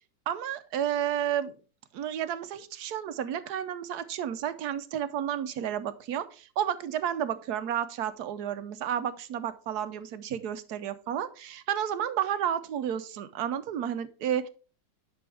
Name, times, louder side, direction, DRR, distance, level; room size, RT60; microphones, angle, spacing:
voice 1, 0.3-1.5 1.9-14.5, right 10 dB, 70° right, 13 dB, 1.1 m, -31 dB
10.5 x 6.1 x 3.4 m, 0.36 s
omnidirectional pair, 1.9 m